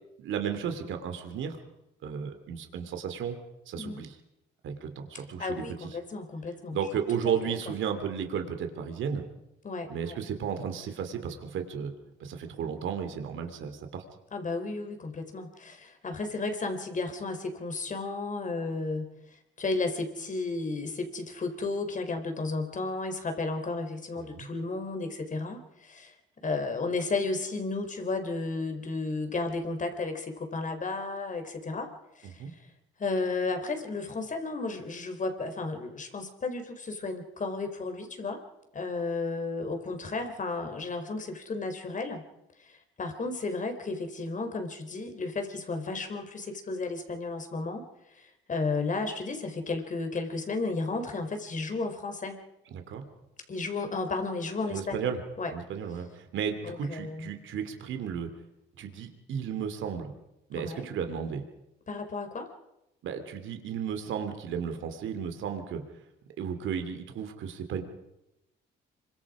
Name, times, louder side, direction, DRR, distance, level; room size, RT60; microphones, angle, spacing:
voice 1, 0.2-1.6 2.0-3.4 3.7-4.1 4.6-5.9 6.7-9.2 9.9-11.9 12.2-14.0 24.2-24.5 32.4-32.5 52.7-53.1 54.7-55.2 55.5-58.3 58.8-60.1 60.5-61.4 63.0-65.8 66.4-67.8, right 7 dB, 75° right, 7 dB, 2.9 m, -34 dB
voice 2, 3.7-4.1 5.4-6.8 9.6-10.2 14.3-19.1 19.6-26.1 26.4-32.4 33.0-38.4 38.7-42.2 42.6-47.8 48.1-52.4 53.5-55.5 56.6-57.3 60.5-60.9 61.9-62.5, left 3 dB, 40° left, 6 dB, 4.0 m, -33 dB
26.5 x 24.0 x 5.0 m, 0.89 s
cardioid pair, 90°, 20 cm